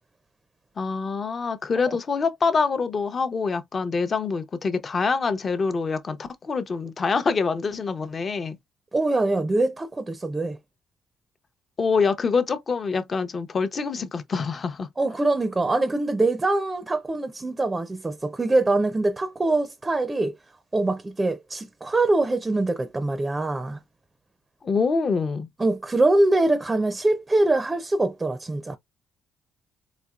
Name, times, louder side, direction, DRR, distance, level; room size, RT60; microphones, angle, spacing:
voice 1, 0.8-8.6 11.8-14.9 24.6-25.5, left 4 dB, 40° left, 0.7 m, -25 dB
voice 2, 8.9-10.6 15.0-20.4 20.7-23.8 25.6-28.8, right 2 dB, 20° right, 0.5 m, -23 dB
4.2 x 2.8 x 2.4 m
cardioid pair, 90°, 0 cm